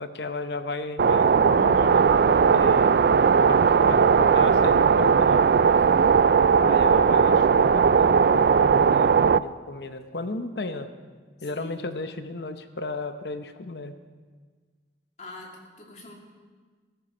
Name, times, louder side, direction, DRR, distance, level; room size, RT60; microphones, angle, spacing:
voice 1, 0.0-5.4 6.6-10.9 11.4-13.9, left 2 dB, 70° left, 9 dB, 0.9 m, -34 dB
sound 1, 1.0-9.4, right 6 dB, 60° right, 0.3 m, -18 dB
voice 2, 5.7-6.3 11.4-11.8 15.2-16.1, left 1 dB, 40° left, -1 dB, 2.5 m, -44 dB
15.0 x 14.0 x 5.0 m, 1.5 s
head